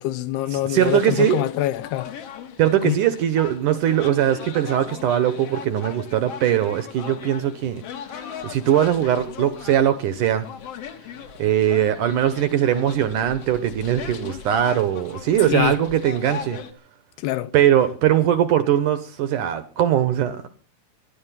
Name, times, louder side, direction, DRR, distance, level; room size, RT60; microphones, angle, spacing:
voice 1, 0.0-2.2 2.8-3.0 15.4-15.8 17.2-17.5, left 14 dB, 80° left, 2.9 m, -25 dB
voice 2, 0.5-1.4 2.6-7.8 8.2-10.5 11.4-16.6 17.5-20.5, right 11 dB, 65° right, 2.2 m, -21 dB
sound 1, 0.8-16.7, left 7 dB, 55° left, 1.9 m, -38 dB
19.5 x 12.5 x 5.8 m
omnidirectional pair, 4.8 m